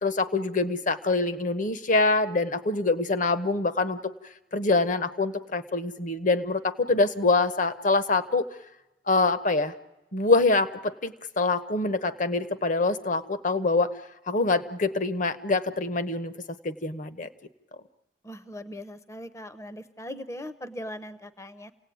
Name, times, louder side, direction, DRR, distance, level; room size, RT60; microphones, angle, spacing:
voice 1, 0.0-4.0 4.5-8.4 9.1-9.7 10.1-13.9 14.3-16.3 16.6-17.3, left 3 dB, 45° left, 12 dB, 1.0 m, -25 dB
voice 2, 18.2-21.7, left 1 dB, 15° left, 12 dB, 0.8 m, -39 dB
28.0 x 17.5 x 9.3 m, 1.1 s
head